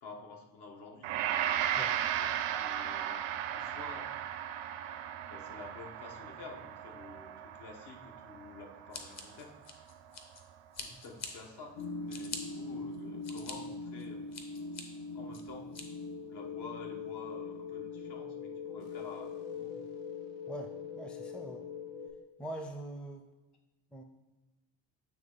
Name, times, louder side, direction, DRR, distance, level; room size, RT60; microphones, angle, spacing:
voice 1, 0.0-1.2 2.2-4.1 5.3-9.6 10.8-14.3 15.1-15.8 16.3-19.8, left 4 dB, 65° left, 2 dB, 1.2 m, -50 dB
Gong, 1.0-10.2, right 10 dB, 80° right, 0.6 m, -36 dB
Scissors, 8.9-10.4 10.7-11.3 11.8-12.4 12.9-13.5 14.0-14.8 15.3-15.8, left 4 dB, 35° left, 0.9 m, -44 dB
sound 1, 11.8-22.1, left 4 dB, 85° left, 0.9 m, -42 dB
voice 2, 21.0-21.6 22.4-23.2 23.9-24.0, right 1 dB, ahead, 4 dB, 0.5 m, -42 dB
8.9 x 3.1 x 3.9 m, 1.0 s
cardioid pair, 95°, 43 cm